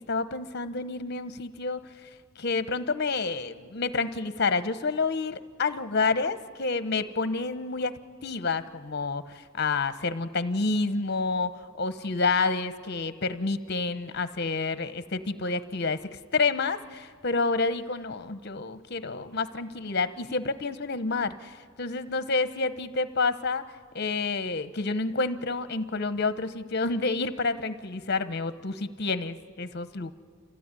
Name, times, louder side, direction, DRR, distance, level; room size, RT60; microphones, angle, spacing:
voice 1, 0.0-2.1 2.4-23.6 23.9-30.1, left 3 dB, 55° left, 12 dB, 1.0 m, -29 dB
27.0 x 15.5 x 9.8 m, 2.1 s
head